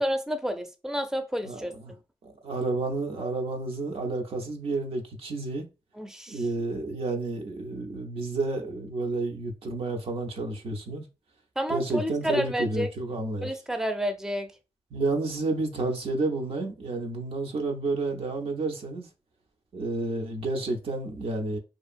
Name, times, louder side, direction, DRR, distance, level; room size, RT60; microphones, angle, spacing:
voice 1, 0.0-1.7 6.0-6.4 11.6-12.9 13.4-14.5, equal, 5° right, 0.5 m, -30 dB
voice 2, 1.4-1.9 2.2-5.7 6.3-11.1 11.7-13.5 14.9-19.1 19.7-21.6, right 2 dB, 75° right, 0.6 m, -30 dB
2.8 x 2.4 x 2.5 m
cardioid pair, 45°, 10 cm